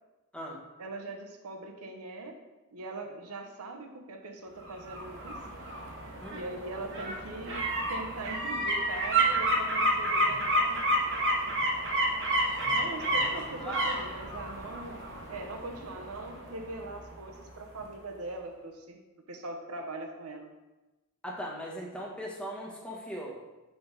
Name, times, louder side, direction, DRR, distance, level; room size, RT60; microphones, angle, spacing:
voice 1, 0.8-2.4 2.7-5.4 6.3-10.9 12.7-15.0 15.3-19.0 19.3-20.5, right 2 dB, 80° right, 3 dB, 0.8 m, -41 dB
sound 1, 4.6-17.4 17.8-17.9, right 1 dB, 60° right, 1.0 m, -30 dB
voice 2, 13.5-13.8 21.2-23.4, equal, 5° left, -3 dB, 1.1 m, -39 dB
4.6 x 4.3 x 5.1 m, 1.1 s
head